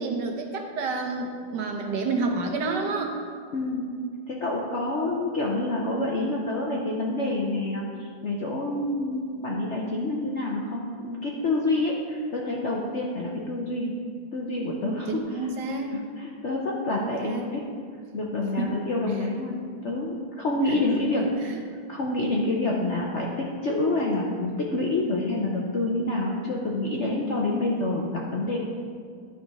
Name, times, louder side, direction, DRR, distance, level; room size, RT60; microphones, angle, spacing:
voice 1, 0.0-3.2 15.1-16.0 17.0-17.5 18.6-18.7 20.7-20.8 21.2-21.6, right 3 dB, 70° right, 3 dB, 1.4 m, -29 dB
voice 2, 3.5-3.9 4.3-14.0 14.3-15.5 15.9-17.7 18.1-21.2 21.9-28.6, left 2 dB, 55° left, -2 dB, 0.8 m, -27 dB
12.0 x 4.3 x 4.7 m, 2.1 s
omnidirectional pair, 2.0 m